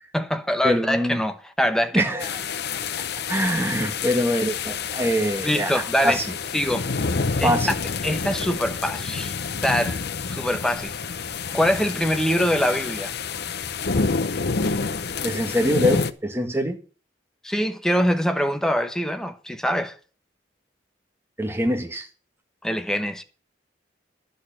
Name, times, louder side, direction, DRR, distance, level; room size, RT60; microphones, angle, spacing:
voice 1, 0.1-2.1 5.4-6.2 6.5-6.9 7.4-7.7 8.0-9.3 9.6-10.0 10.3-10.9 11.5-13.1 17.4-19.9 22.6-23.2, equal, 5° left, 1.1 m, -24 dB
voice 2, 0.6-1.2 1.9-2.4 3.3-5.7 6.0-6.2 7.4-7.8 15.2-16.8 21.4-22.1, equal, 15° right, 1.7 m, -24 dB
sound 1, 2.2-16.1, left 4 dB, 60° left, 0.7 m, -28 dB
11.5 x 6.3 x 8.7 m
head